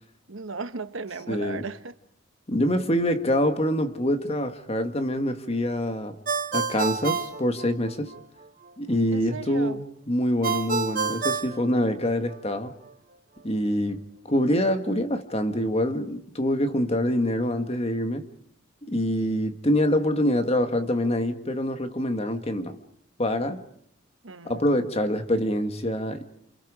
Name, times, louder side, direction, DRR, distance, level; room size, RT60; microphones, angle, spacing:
voice 1, 0.3-1.9 9.1-9.8 24.2-24.8, right 3 dB, 80° right, 1.2 m, -36 dB
voice 2, 1.3-1.6 2.5-6.1 6.5-8.1 8.8-9.8 10.1-12.7 13.4-18.3 18.9-22.8 23.2-23.6 24.4-26.2, left 1 dB, 30° left, 1.7 m, -25 dB
Ringtone, 6.3-8.2 10.4-12.4, right 5 dB, 45° right, 1.3 m, -28 dB
29.5 x 28.5 x 5.0 m
head